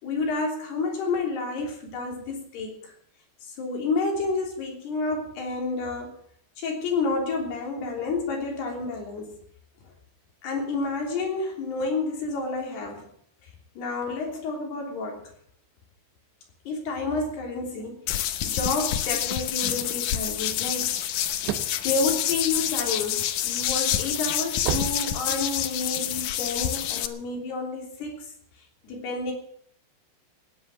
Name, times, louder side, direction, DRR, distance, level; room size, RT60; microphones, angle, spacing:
voice 1, 0.0-2.9 3.4-6.1 6.6-9.4 10.4-13.1 13.8-15.3 16.7-21.3 21.8-28.3 28.8-29.3, left 3 dB, 70° left, 1 dB, 5.2 m, -30 dB
sound 1, 18.1-27.1, left 11 dB, 85° left, 1.7 m, -27 dB
sound 2, 20.9-23.1 23.6-25.8, right 10 dB, 75° right, 3.1 m, -32 dB
17.0 x 10.0 x 7.6 m, 0.65 s
omnidirectional pair, 5.0 m